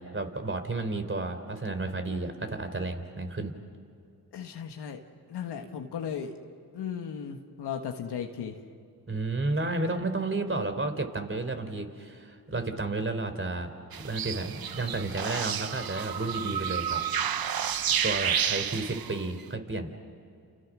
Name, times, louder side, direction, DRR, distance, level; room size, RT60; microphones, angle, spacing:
voice 1, 0.0-3.5 9.1-13.7 14.0-17.0 18.0-19.9, right 2 dB, 30° right, 7 dB, 3.8 m, -32 dB
voice 2, 4.3-5.0 5.3-6.3 6.7-8.5, left 7 dB, 85° left, 4 dB, 1.6 m, -36 dB
sound 1, 13.9-19.3, right 8 dB, 65° right, 1.0 m, -30 dB
30.0 x 29.0 x 6.2 m, 2.4 s
cardioid pair, 55°, 39 cm